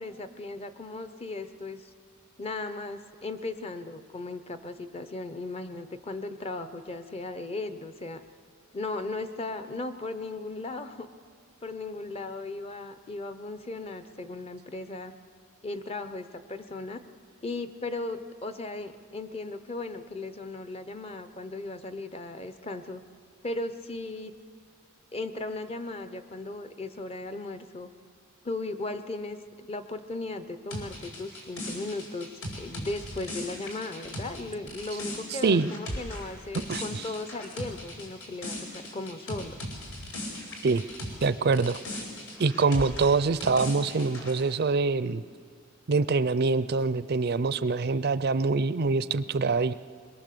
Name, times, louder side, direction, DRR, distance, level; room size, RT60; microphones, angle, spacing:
voice 1, 0.0-1.9 2.4-8.2 8.7-11.1 11.6-15.1 15.6-17.0 17.4-23.0 23.4-24.3 25.1-27.9 28.4-39.6, left 2 dB, 30° left, 10 dB, 0.8 m, -37 dB
sound 1, 30.7-41.3 41.5-44.4, left 1 dB, 80° left, 4.8 m, -38 dB
voice 2, 36.7-37.0 40.6-40.8 41.2-42.0 42.4-45.2 45.9-49.7, right 4 dB, 50° right, 15 dB, 0.5 m, -25 dB
22.5 x 21.5 x 6.8 m, 2.2 s
head